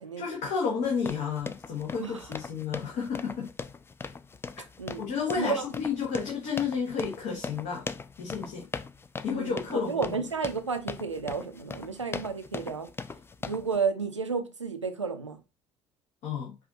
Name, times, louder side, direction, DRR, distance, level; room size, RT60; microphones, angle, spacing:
voice 1, 0.2-3.5 5.0-7.9 8.2-8.7 9.2-10.1 16.2-16.6, left 6 dB, 55° left, 1.2 m, -31 dB
sound 1, 0.8-13.8, left 4 dB, 15° left, 0.4 m, -40 dB
voice 2, 2.0-2.3 4.8-5.7 9.3-12.9 13.4-15.4, right 5 dB, 90° right, 0.5 m, -32 dB
4.8 x 2.7 x 3.9 m
figure-of-eight pair, 55°, 15 cm